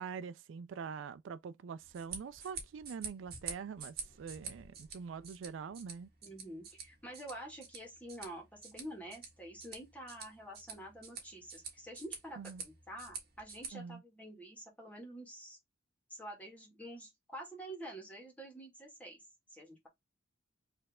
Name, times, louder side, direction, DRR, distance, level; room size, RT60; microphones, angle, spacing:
voice 1, 0.0-6.1 12.4-12.6 13.7-14.0, right 6 dB, 85° right, 0.3 m, -44 dB
sound 1, 1.8-13.7, right 5 dB, 55° right, 1.9 m, -48 dB
voice 2, 6.2-15.6 16.1-19.2 19.5-19.9, right 1 dB, 10° left, 1.9 m, -48 dB
4.5 x 3.2 x 3.5 m
head